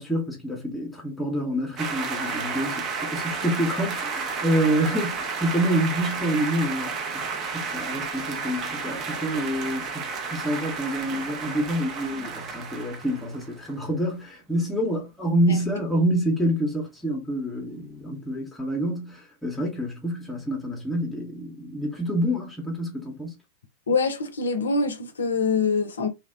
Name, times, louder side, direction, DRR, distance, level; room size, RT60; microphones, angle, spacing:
voice 1, 0.0-10.0 10.3-23.4, right 1 dB, 5° left, 0.8 m, -27 dB
sound 1, 1.8-13.8, right 5 dB, 35° right, 0.5 m, -32 dB
voice 2, 23.9-26.1, left 4 dB, 70° left, 0.4 m, -24 dB
2.7 x 2.0 x 2.5 m
figure-of-eight pair, 90°, 0 cm